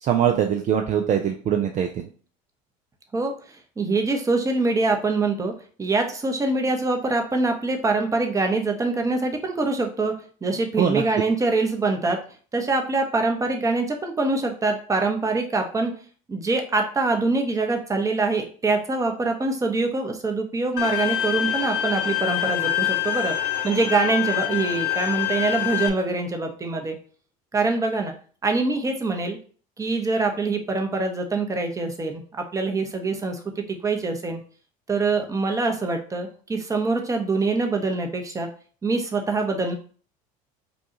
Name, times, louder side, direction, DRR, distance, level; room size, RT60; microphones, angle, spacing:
voice 1, 0.0-2.1 10.8-11.0, right 9 dB, 45° right, 5 dB, 0.5 m, -22 dB
voice 2, 3.1-5.5 5.8-10.1 10.4-12.2 12.5-15.9 16.3-23.3 23.6-27.0 27.5-28.1 28.4-29.4 29.8-32.2 32.5-34.4 34.9-38.5 38.8-39.7, right 3 dB, 20° right, 3 dB, 0.9 m, -24 dB
Bowed string instrument, 20.8-25.9, left 12 dB, 65° left, 0.7 m, -25 dB
5.1 x 2.4 x 2.9 m, 0.42 s
supercardioid pair, 95°, 18 cm